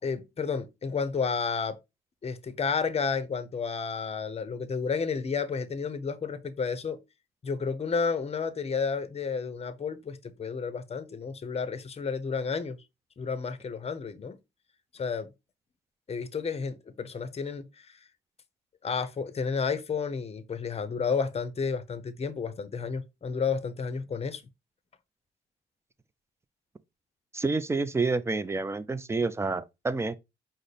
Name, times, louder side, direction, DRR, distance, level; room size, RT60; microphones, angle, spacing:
voice 1, 0.0-1.8 2.2-7.0 7.4-12.8 13.2-14.4 14.9-15.3 16.1-18.0 18.8-24.4, left 5 dB, 30° left, 0.6 m, -31 dB
voice 2, 27.3-30.1, right 3 dB, 15° right, 0.4 m, -28 dB
4.9 x 2.0 x 4.1 m
cardioid pair, 90°, 20 cm